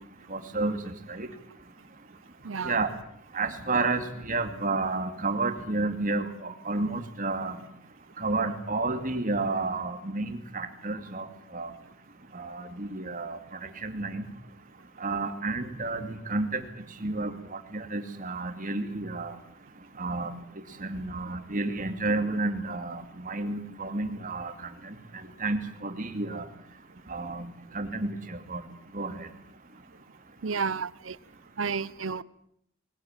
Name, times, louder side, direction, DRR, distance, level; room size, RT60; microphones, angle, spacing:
voice 1, 0.3-1.3 2.6-2.9 3.3-7.6 8.2-11.3 11.5-11.7 12.3-14.2 15.0-16.6 17.0-19.3 20.0-20.3 20.8-24.9 25.4-26.4 27.1-28.6 28.9-29.3, right 3 dB, 40° right, 8 dB, 2.4 m, -31 dB
voice 2, 30.4-31.2 31.6-32.2, right 5 dB, 85° right, 20 dB, 0.9 m, -31 dB
21.5 x 19.0 x 9.1 m, 0.71 s
head